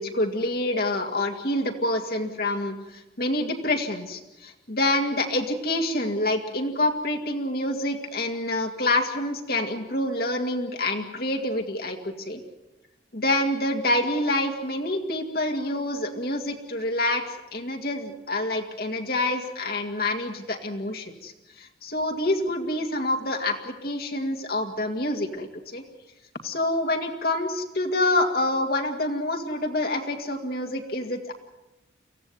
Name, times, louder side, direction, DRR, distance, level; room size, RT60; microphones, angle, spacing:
voice 1, 0.0-12.4 13.1-21.3 21.6-25.8 26.4-31.3, left 1 dB, 55° left, 4 dB, 2.3 m, -27 dB
24.0 x 16.0 x 9.4 m, 0.97 s
head